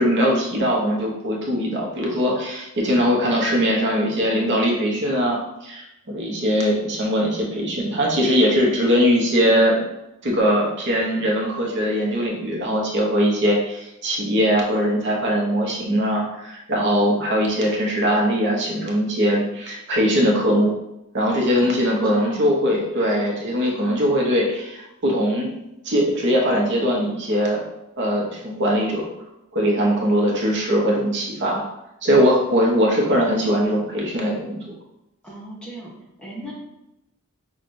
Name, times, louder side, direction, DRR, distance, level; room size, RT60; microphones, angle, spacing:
voice 1, 0.0-9.8 10.2-20.7 21.1-25.5 25.8-27.6 28.0-29.1 29.5-31.6 32.0-34.6 36.5-36.6, equal, 55° right, -2 dB, 0.9 m, -21 dB
voice 2, 21.6-22.7 35.2-35.9 36.2-36.5, right 1 dB, 5° left, -5 dB, 0.9 m, -38 dB
6.0 x 2.4 x 2.6 m, 0.90 s
head